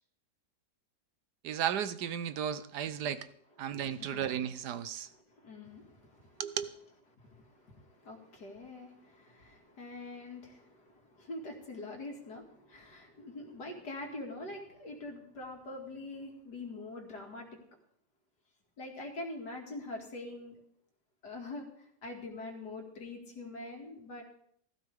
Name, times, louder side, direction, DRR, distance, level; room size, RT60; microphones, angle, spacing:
voice 1, 1.4-3.3 3.6-5.1 6.4-6.7, right 9 dB, 75° right, 13 dB, 1.3 m, -34 dB
voice 2, 5.3-6.4 7.2-17.6 18.8-20.5 21.2-24.2, left 2 dB, 75° left, 2 dB, 2.8 m, -44 dB
16.0 x 14.0 x 3.5 m, 0.65 s
omnidirectional pair, 1.8 m